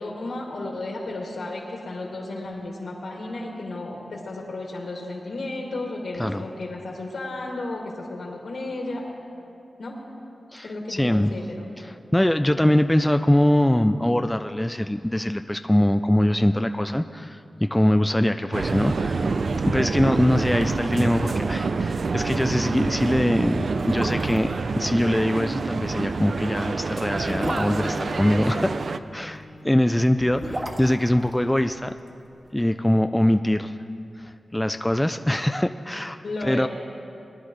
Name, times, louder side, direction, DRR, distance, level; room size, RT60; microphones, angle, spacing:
voice 1, 0.0-9.0 9.8-10.0 10.6-11.7 36.2-36.7, left 2 dB, 75° left, -2 dB, 2.6 m, -33 dB
voice 2, 10.5-11.3 11.8-28.8 29.1-31.9 32.5-33.8 34.2-36.7, left 1 dB, 10° left, 8 dB, 0.3 m, -23 dB
sound 1, 18.5-29.0, right 4 dB, 65° right, 0.4 m, -27 dB
sound 2, 20.5-21.2 21.5-21.6 22.0-22.1 22.8-22.9 23.6-24.5 26.0-28.7 30.0-32.2 32.5-32.6, right 1 dB, 30° right, 1.6 m, -34 dB
Bowed string instrument, 26.9-32.2, left 1 dB, 45° left, 1.4 m, -43 dB
21.5 x 11.0 x 3.3 m, 2.6 s
wide cardioid pair, 95°, 0 cm